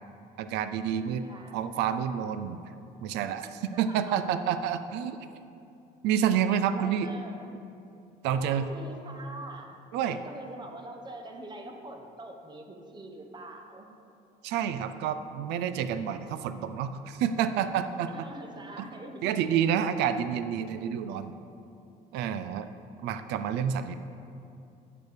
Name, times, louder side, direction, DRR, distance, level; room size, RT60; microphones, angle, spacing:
voice 1, 0.4-2.6 3.0-5.2 6.0-7.1 8.2-8.7 9.9-10.2 14.4-18.1 18.8-18.9 19.2-21.3 22.1-22.7 23.0-23.9, right 8 dB, 90° right, 11 dB, 0.4 m, -29 dB
voice 2, 1.2-1.6 3.4-4.2 6.7-7.4 8.3-13.9 18.1-19.4, right 1 dB, 25° right, 4 dB, 1.0 m, -44 dB
8.7 x 6.5 x 4.9 m, 2.6 s
cardioid pair, 110°, 17 cm